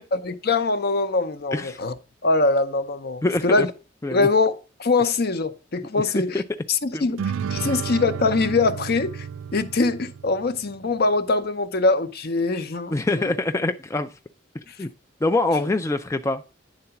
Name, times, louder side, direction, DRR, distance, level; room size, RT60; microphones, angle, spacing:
voice 1, 0.1-1.9 2.2-3.7 4.1-6.4 6.7-9.3 9.5-13.3 14.7-14.9 15.6-15.7, left 3 dB, 50° left, 0.7 m, -23 dB
voice 2, 3.2-3.7 4.0-4.3 6.3-6.4 6.9-7.0 7.6-7.8 12.9-14.1 14.8-14.9 15.2-16.4, left 2 dB, 15° left, 0.3 m, -24 dB
sound 1, 7.2-10.8, right 7 dB, 90° right, 0.4 m, -32 dB
9.8 x 3.9 x 5.7 m
head